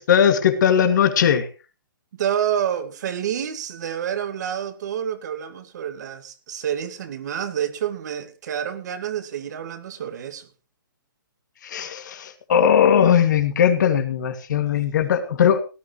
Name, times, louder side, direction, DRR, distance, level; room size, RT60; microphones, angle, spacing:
voice 1, 0.0-1.5 11.6-15.6, left 8 dB, 60° left, 7 dB, 2.4 m, -19 dB
voice 2, 2.1-10.5, right 9 dB, 55° right, 9 dB, 2.1 m, -28 dB
18.0 x 12.5 x 3.2 m, 0.32 s
hypercardioid pair, 150°, 11 cm